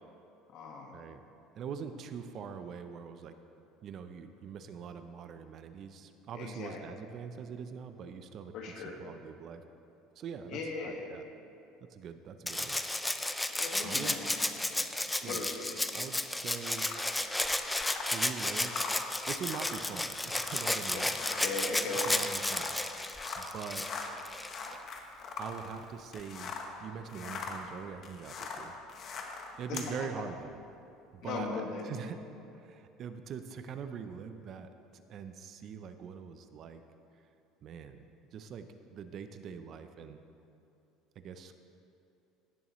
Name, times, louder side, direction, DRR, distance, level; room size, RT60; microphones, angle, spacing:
voice 1, 0.5-1.0 6.3-6.8 8.5-9.0 10.5-11.1 13.5-14.3 14.7-14.9 15.2-15.8 20.9-22.1 28.5-28.6 29.7-30.0 31.2-31.8, left 3 dB, 60° left, 1 dB, 1.6 m, -38 dB
voice 2, 1.6-3.3 3.8-9.6 10.2-11.3 11.9-12.8 13.8-14.2 15.2-15.4 15.9-16.9 18.1-18.9 19.2-21.3 21.9-22.8 23.4-23.9 24.7-24.8 25.4-26.5 26.8-28.7 29.6-30.6 31.1-32.2 32.5-36.8 37.6-38.1 38.3-40.2 41.2-41.6, right 6 dB, 45° right, 9 dB, 0.5 m, -43 dB
Rattle (instrument), 12.5-24.8 26.2-26.3, left 1 dB, 5° left, 0.4 m, -33 dB
sound 1, 16.8-26.8 27.0-29.9, left 4 dB, 45° left, 1.0 m, -42 dB
17.0 x 7.0 x 3.1 m, 2.7 s
cardioid pair, 125°, 0 cm